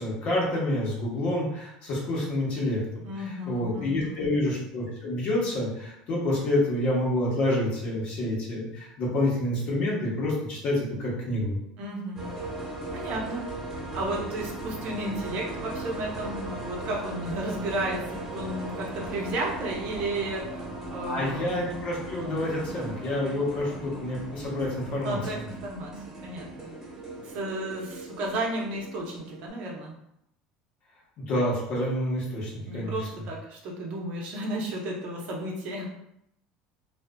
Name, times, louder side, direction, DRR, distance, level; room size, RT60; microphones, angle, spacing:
voice 1, 0.0-11.5 21.1-25.2 31.3-33.1, left 1 dB, 55° left, -4 dB, 1.0 m, -28 dB
voice 2, 3.0-4.3 11.8-12.2 12.9-13.4 13.9-21.5 25.0-25.9 26.2-26.7 27.2-29.9 32.6-36.1, right 1 dB, 65° right, -1 dB, 0.7 m, -33 dB
sound 1, 12.2-29.5, right 2 dB, 15° right, 1.1 m, -38 dB
2.5 x 2.4 x 2.2 m, 0.78 s
supercardioid pair, 105°, 3 cm